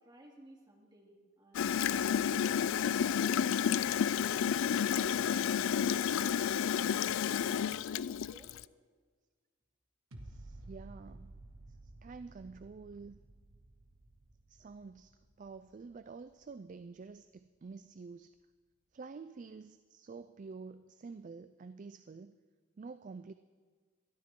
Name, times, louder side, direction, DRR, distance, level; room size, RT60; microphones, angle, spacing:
voice 1, 0.0-4.6 7.2-8.6, right 1 dB, 20° right, -1 dB, 2.4 m, -59 dB
Gurgling / Toilet flush, 1.5-8.6, left 8 dB, 65° left, 0.3 m, -31 dB
sound 1, 10.1-17.2 17.6-17.7, right 2 dB, 85° right, 1.7 m, -54 dB
voice 2, 10.2-11.3 11.8-13.2 14.5-15.1 15.4-18.3 18.9-22.4 22.8-23.3, right 4 dB, 35° right, 11 dB, 0.3 m, -49 dB
22.0 x 13.0 x 3.8 m, 1.5 s
head